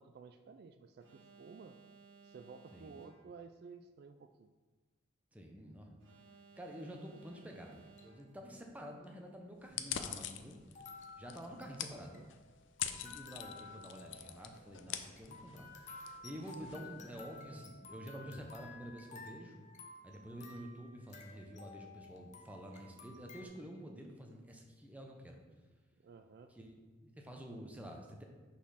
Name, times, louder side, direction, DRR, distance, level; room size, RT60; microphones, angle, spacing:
voice 1, 0.0-1.8 2.2-4.5 11.8-12.3 26.0-26.5, right 5 dB, 55° right, 8 dB, 0.3 m, -54 dB
Alarm, 1.0-3.5 6.0-8.5, right 5 dB, 70° right, 1.2 m, -60 dB
voice 2, 5.3-5.9 6.5-10.6 11.2-12.2 12.9-19.6 20.0-25.4 26.5-26.7 27.0-28.2, equal, 10° right, 1 dB, 0.8 m, -49 dB
sound 1, 7.7-8.2 9.0-9.1 10.7-23.4, left 3 dB, 40° left, 0.8 m, -54 dB
sound 2, 9.6-17.4, left 10 dB, 65° left, 0.5 m, -45 dB
6.0 x 4.2 x 5.6 m, 1.3 s
head